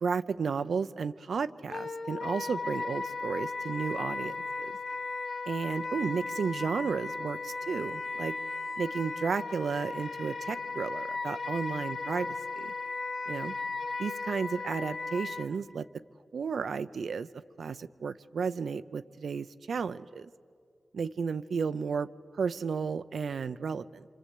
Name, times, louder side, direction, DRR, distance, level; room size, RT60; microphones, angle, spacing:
voice 1, 0.0-4.7 5.5-8.4 8.8-12.7 13.3-13.5 14.0-15.9 16.3-17.3 17.6-20.3 20.9-22.1 22.4-24.1, right 5 dB, 80° right, 12 dB, 0.6 m, -33 dB
Wind instrument woodwind instrument, 1.7-15.5, left 3 dB, 85° left, 2.5 m, -36 dB
27.0 x 26.0 x 8.4 m, 2.2 s
wide cardioid pair, 115°, 0 cm